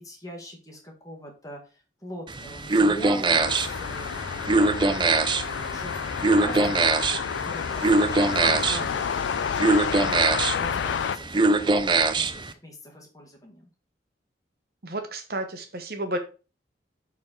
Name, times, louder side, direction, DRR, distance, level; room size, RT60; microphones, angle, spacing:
voice 1, 0.0-4.7 5.3-8.9 9.3-13.7, equal, 20° left, 0 dB, 1.8 m, -43 dB
sound 1, 2.3-12.5, right 3 dB, 25° right, 0.4 m, -24 dB
sound 2, 3.3-11.2, left 7 dB, 80° left, 0.4 m, -30 dB
voice 2, 8.4-8.9 14.8-16.2, right 2 dB, 55° right, 6 dB, 1.0 m, -32 dB
7.4 x 4.2 x 4.4 m, 0.33 s
head